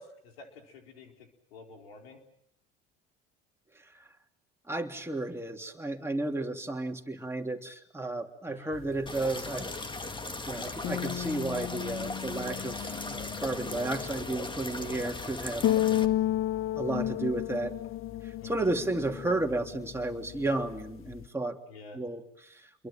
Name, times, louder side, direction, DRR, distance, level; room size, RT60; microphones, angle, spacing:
voice 1, 0.0-2.2 8.5-8.8 18.4-18.7 21.7-22.0, left 3 dB, 90° left, 4 dB, 4.4 m, -50 dB
voice 2, 4.7-9.7 10.5-15.6 16.8-17.7 18.2-21.6 21.9-22.9, right 2 dB, 10° right, 3 dB, 3.3 m, -33 dB
sound 1, 8.7-21.3, left 12 dB, 45° left, 0.9 m, -34 dB
sound 2, 9.1-16.1, left 2 dB, 15° left, 2.1 m, -38 dB
29.0 x 22.5 x 7.7 m, 0.73 s
hypercardioid pair, 75°, 29 cm